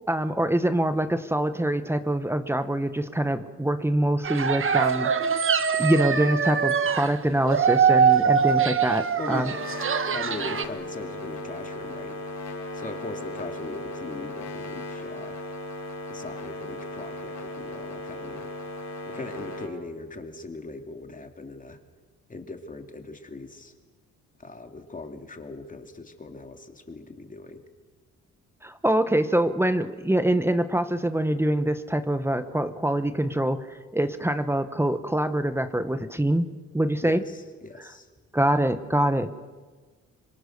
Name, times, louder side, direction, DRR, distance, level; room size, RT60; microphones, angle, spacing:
voice 1, 0.1-5.1 5.8-9.5 28.6-36.5 36.7-37.2 38.3-39.3, right 1 dB, 10° right, 10 dB, 1.3 m, -24 dB
sound 1, 4.2-7.1 7.4-10.6, right 7 dB, 45° right, 1.5 m, -23 dB
voice 2, 9.2-9.5 10.1-12.2 12.7-15.4 16.1-18.5 19.1-21.8 22.3-23.7 24.4-27.6 37.0-38.1, left 3 dB, 25° left, 5 dB, 2.9 m, -39 dB
sound 2, 9.4-19.7, left 1 dB, 65° left, 5.6 m, -37 dB
26.5 x 22.5 x 6.7 m, 1.4 s
cardioid pair, 90°, 30 cm